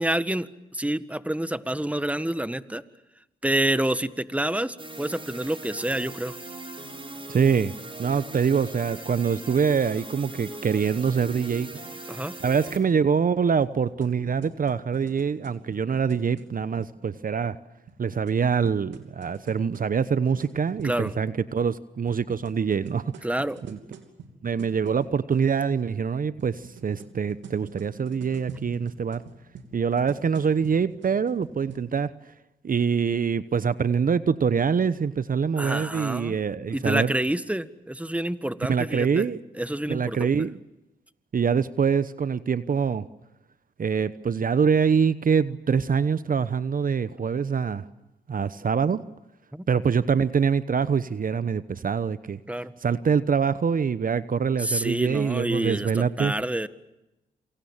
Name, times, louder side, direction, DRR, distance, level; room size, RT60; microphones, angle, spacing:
voice 1, 0.0-2.8 3.4-6.4 12.1-12.3 20.8-21.2 23.2-23.6 35.6-36.3 36.7-39.3 39.6-40.3 49.5-49.6 52.5-52.7 54.6-56.7, right 1 dB, 5° right, 13 dB, 1.6 m, -28 dB
sound 1, 4.8-12.8, right 2 dB, 30° right, 5.6 m, -40 dB
voice 2, 7.3-7.7 8.0-11.7 12.4-17.6 18.0-23.1 23.7-23.8 24.4-29.2 29.7-32.1 32.6-37.1 38.7-39.4 39.9-40.6 41.3-43.0 43.8-47.8 48.3-49.0 49.7-52.4 52.8-56.3, right 6 dB, 50° right, 15 dB, 1.0 m, -24 dB
sound 2, 13.6-16.9 17.9-21.2 22.1-25.5 26.4-31.8, right 5 dB, 80° right, 3.0 m, -46 dB
27.5 x 25.0 x 7.4 m, 0.96 s
supercardioid pair, 40°, 19 cm